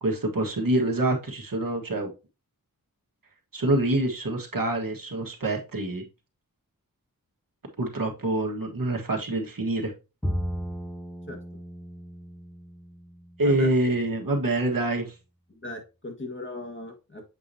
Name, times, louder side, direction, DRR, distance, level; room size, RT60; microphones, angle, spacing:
voice 1, 0.0-2.1 3.5-6.1 7.8-9.9 13.4-15.1, right 2 dB, 65° right, 1.5 m, -26 dB
Bowed string instrument, 10.2-13.6, equal, 5° left, 0.9 m, -35 dB
voice 2, 15.5-17.3, left 2 dB, 35° left, 1.6 m, -37 dB
7.5 x 4.8 x 2.7 m
wide cardioid pair, 75°, 36 cm